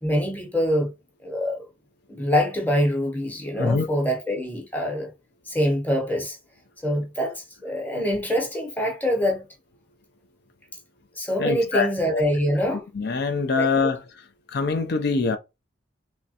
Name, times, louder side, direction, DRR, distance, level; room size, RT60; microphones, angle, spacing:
voice 1, 0.0-0.9 1.2-1.7 2.1-5.1 5.5-6.4 6.8-9.5 11.2-12.8 13.6-13.7, equal, 10° left, 0.9 m, -25 dB
voice 2, 11.4-12.2 12.9-14.0 14.5-15.4, left 4 dB, 55° left, 0.5 m, -24 dB
3.5 x 3.2 x 2.8 m
head